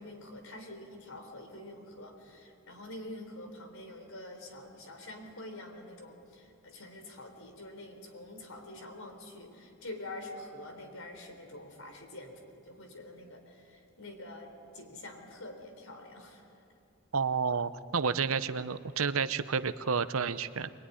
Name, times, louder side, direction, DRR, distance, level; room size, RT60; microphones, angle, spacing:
voice 1, 0.0-16.4, left 1 dB, 75° left, 5 dB, 3.9 m, -46 dB
voice 2, 17.1-20.7, right 5 dB, 75° right, 13 dB, 0.8 m, -30 dB
23.0 x 22.0 x 9.9 m, 2.7 s
head